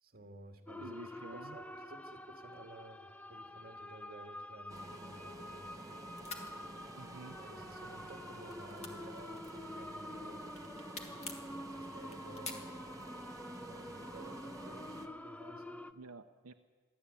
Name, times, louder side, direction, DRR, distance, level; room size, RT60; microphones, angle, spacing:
voice 1, 0.0-1.0 1.3-6.0 7.4-10.7 11.8-12.8 13.6-15.8, right 2 dB, 45° right, 3 dB, 2.2 m, -54 dB
sound 1, 0.7-15.9, left 1 dB, 5° left, 0.6 m, -48 dB
voice 2, 0.8-1.6 7.0-7.4 15.9-16.5, right 3 dB, 85° right, 5 dB, 0.8 m, -50 dB
sound 2, 4.7-5.8 6.1-6.5 7.2-7.7 8.0-10.0 10.4-11.5 12.0-13.2, left 4 dB, 30° left, 2.2 m, -47 dB
sound 3, 4.7-15.1, right 2 dB, 15° right, 1.1 m, -50 dB
23.0 x 14.5 x 8.4 m, 1.5 s
head